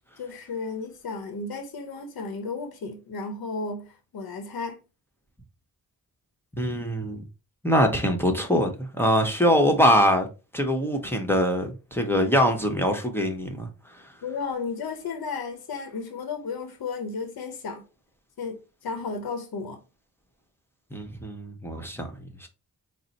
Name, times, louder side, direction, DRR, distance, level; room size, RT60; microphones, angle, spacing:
voice 1, 0.2-4.8 14.2-17.8 18.4-19.8, left 4 dB, 80° left, 0.8 m, -34 dB
voice 2, 6.6-7.2 7.6-10.3 10.5-13.7 20.9-22.1 22.4-22.5, equal, 5° left, 0.9 m, -23 dB
4.0 x 2.0 x 4.0 m
cardioid pair, 65°, 37 cm